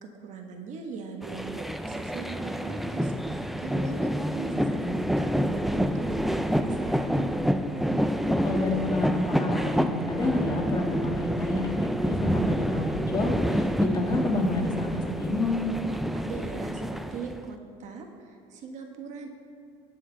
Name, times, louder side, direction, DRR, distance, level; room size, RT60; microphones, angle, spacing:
voice 1, 0.0-7.1 15.8-19.3, right 4 dB, 55° right, 3 dB, 1.2 m, -40 dB
sound 1, 1.2-17.5, equal, ahead, 0.4 m, -28 dB
voice 2, 8.4-15.7, left 2 dB, 25° left, -1 dB, 2.0 m, -29 dB
18.5 x 6.3 x 3.4 m, 2.6 s
supercardioid pair, 100°, 14 cm